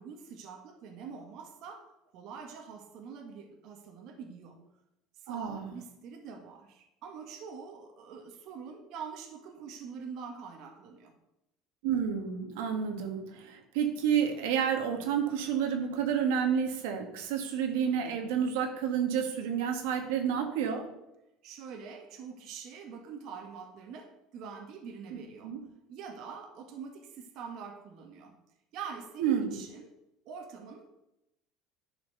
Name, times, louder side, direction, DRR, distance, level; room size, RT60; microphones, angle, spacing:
voice 1, 0.0-1.8 2.1-4.6 5.3-11.1 21.4-25.5 25.9-28.3 28.7-29.9 30.3-30.9, right 6 dB, 55° right, 3 dB, 1.8 m, -45 dB
voice 2, 5.3-5.7 11.8-20.8 25.1-25.6 29.2-29.6, right 8 dB, 85° right, 4 dB, 1.9 m, -30 dB
11.0 x 5.8 x 6.8 m, 0.88 s
cardioid pair, 150°, 0 cm